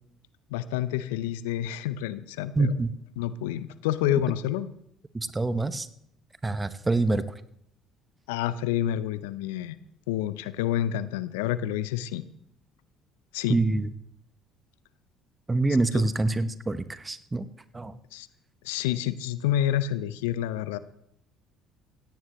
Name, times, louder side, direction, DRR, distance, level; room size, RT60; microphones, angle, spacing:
voice 1, 0.5-2.7 3.2-4.7 8.3-9.8 10.1-12.2 13.3-13.6 15.9-16.0 18.1-18.3 18.6-20.8, left 12 dB, 75° left, 15 dB, 0.6 m, -28 dB
voice 2, 2.6-2.9 5.1-5.9 6.4-7.2 13.5-13.9 15.5-17.5 17.7-18.0, right 2 dB, 20° right, 13 dB, 1.0 m, -25 dB
17.0 x 16.5 x 3.1 m, 0.73 s
hypercardioid pair, 55°, 0 cm